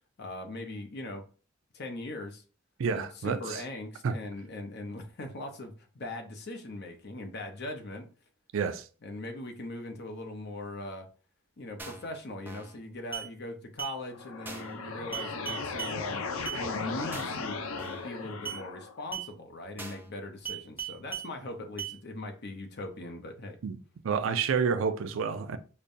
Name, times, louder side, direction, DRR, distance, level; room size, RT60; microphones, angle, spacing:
voice 1, 0.2-1.2 1.7-2.4 2.9-8.1 9.0-11.1 11.6-16.2 16.5-17.6 18.0-23.6, left 2 dB, 55° left, 0.7 m, -40 dB
voice 2, 2.8-3.6 4.0-4.1 8.5-8.8 23.6-23.8 24.0-25.6, right 6 dB, 70° right, 0.4 m, -29 dB
sound 1, 11.8-12.1 12.5-12.8 13.1-13.3 13.8-14.0 14.5-14.8 15.1-16.0 16.5-16.6 17.1-17.4 17.8-18.1 18.4-18.6 19.1-19.3 19.8-20.1 20.4-21.3 21.8-21.9, right 8 dB, 10° right, 0.5 m, -38 dB
sound 2, 14.0-19.0, left 4 dB, 90° left, 0.5 m, -37 dB
5.1 x 2.2 x 2.6 m
head